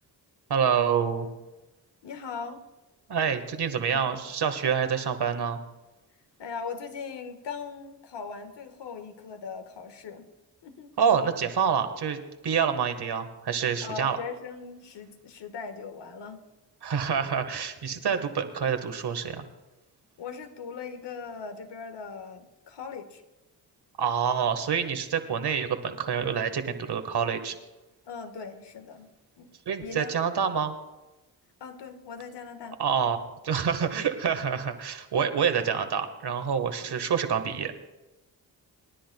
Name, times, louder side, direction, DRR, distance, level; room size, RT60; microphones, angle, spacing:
voice 1, 0.5-1.3 3.1-5.6 11.0-14.2 16.8-19.4 24.0-27.5 29.6-30.7 32.8-37.9, right 7 dB, 65° right, 8 dB, 1.5 m, -27 dB
voice 2, 2.0-2.6 3.9-4.0 6.4-10.3 10.6-10.9 13.8-16.4 20.2-23.2 28.1-29.1 29.4-29.5 29.8-30.1 31.6-32.8 36.7-36.9, left 5 dB, 75° left, 7 dB, 1.5 m, -39 dB
27.5 x 10.5 x 2.3 m, 1.0 s
supercardioid pair, 50°, 42 cm